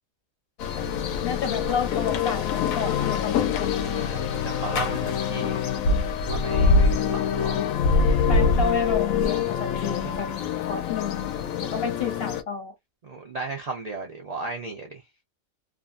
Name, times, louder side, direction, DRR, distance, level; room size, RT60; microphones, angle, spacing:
sound 1, 0.6-12.4, left 5 dB, 80° left, 1.0 m, -24 dB
voice 1, 0.8-3.9 8.3-10.3 10.7-12.7, left 6 dB, 55° left, 0.7 m, -31 dB
voice 2, 3.9-5.8 6.2-7.5 10.0-10.1 13.0-15.0, right 3 dB, 80° right, 0.3 m, -35 dB
2.7 x 2.3 x 2.4 m
omnidirectional pair, 1.4 m